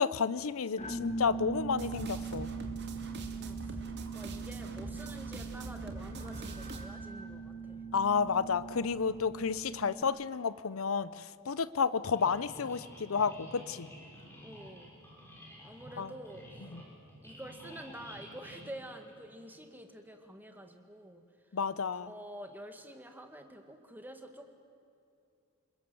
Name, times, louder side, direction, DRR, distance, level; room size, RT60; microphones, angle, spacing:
voice 1, 0.0-2.5 7.9-13.9 16.0-16.1 16.7-16.8 21.5-22.1, left 5 dB, 80° left, 16 dB, 0.7 m, -31 dB
sound 1, 0.8-10.0, right 4 dB, 35° left, 1.8 m, -41 dB
sound 2, 1.8-6.9, right 1 dB, 55° right, 2.4 m, -43 dB
voice 2, 3.3-7.8 14.4-14.9 15.6-16.4 17.2-21.2 21.9-24.5, right 1 dB, 10° right, 5 dB, 2.0 m, -48 dB
sound 3, 12.1-19.6, equal, 10° left, 6.1 m, -51 dB
29.0 x 21.0 x 7.8 m, 2.6 s
head